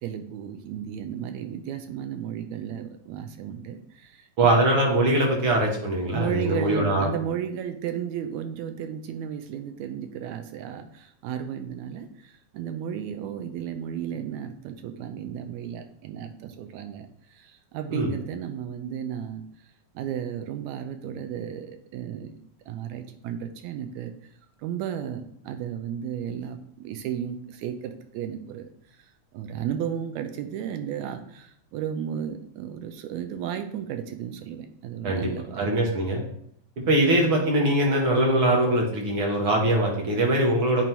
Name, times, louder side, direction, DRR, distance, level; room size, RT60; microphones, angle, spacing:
voice 1, 0.0-4.5 6.1-19.7 19.9-22.3 22.7-24.1 24.6-35.7 36.8-37.0, right 9 dB, 80° right, 7 dB, 1.8 m, -34 dB
voice 2, 4.4-7.1 17.9-18.1 35.0-35.3 35.6-36.2 36.8-40.9, right 1 dB, 60° right, -1 dB, 1.5 m, -22 dB
9.0 x 3.1 x 4.4 m, 0.68 s
omnidirectional pair, 3.4 m